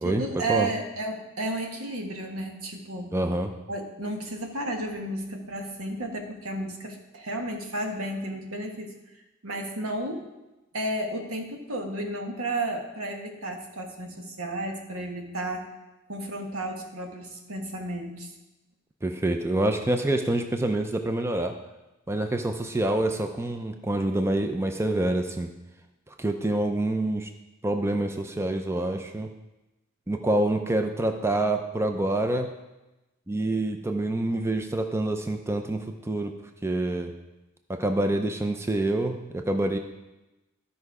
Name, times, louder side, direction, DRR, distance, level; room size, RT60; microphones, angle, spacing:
voice 1, 0.0-3.1 3.7-8.9 9.4-10.3 10.7-15.7 16.1-18.3, right 1 dB, 75° right, 3 dB, 1.4 m, -32 dB
voice 2, 3.1-3.5 19.0-21.6 22.1-25.5 26.2-27.3 27.6-29.3 30.1-32.5 33.3-35.8 36.1-36.3 36.6-37.1 37.7-39.8, right 1 dB, 10° right, 6 dB, 0.5 m, -26 dB
12.5 x 5.4 x 4.8 m, 1.0 s
head